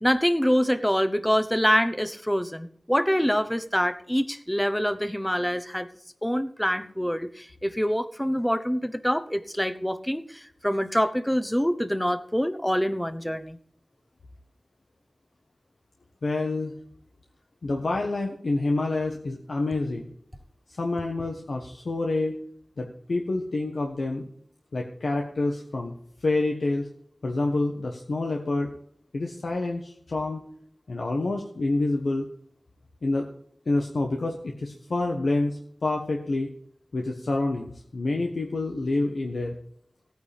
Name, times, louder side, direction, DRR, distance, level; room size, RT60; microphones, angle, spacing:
voice 1, 0.0-5.9 6.2-10.2 10.6-13.6, equal, 10° left, 11 dB, 0.9 m, -25 dB
voice 2, 16.2-16.7 17.6-20.1 20.8-22.4 22.8-24.2 24.7-25.9 26.2-26.9 27.2-28.7 29.1-30.4 30.9-32.3 33.0-33.3 33.7-36.5 36.9-39.6, left 2 dB, 90° left, 1 dB, 1.2 m, -27 dB
16.5 x 9.4 x 3.5 m, 0.62 s
wide cardioid pair, 45°, 0 cm